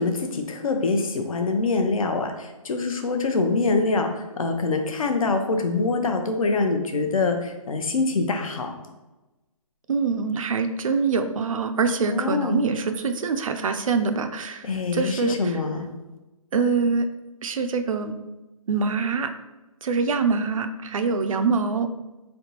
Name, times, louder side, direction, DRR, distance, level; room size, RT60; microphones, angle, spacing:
voice 1, 0.0-8.7 12.0-12.6 14.6-15.9, left 3 dB, 70° left, 5 dB, 0.7 m, -24 dB
voice 2, 9.9-14.6 14.9-15.5 16.5-17.1 17.4-18.2 18.7-19.3 19.8-21.9, right 4 dB, 65° right, 8 dB, 0.4 m, -24 dB
4.0 x 3.4 x 2.8 m, 1.1 s
hypercardioid pair, 165°, 19 cm